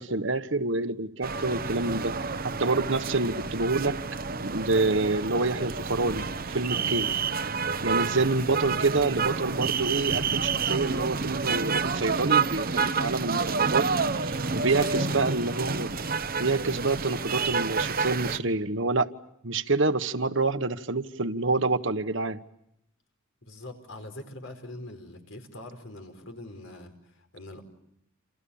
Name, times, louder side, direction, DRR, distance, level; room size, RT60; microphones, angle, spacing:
voice 1, 0.0-2.1 2.4-4.0 4.4-7.2 7.8-15.9 16.4-19.1 19.4-22.4, right 3 dB, 65° right, 1.3 m, -27 dB
sound 1, 1.2-18.4, right 5 dB, 45° right, 1.0 m, -29 dB
voice 2, 14.4-15.6 16.0-16.1 23.4-27.6, left 2 dB, 70° left, 4.8 m, -43 dB
28.5 x 28.5 x 7.2 m
head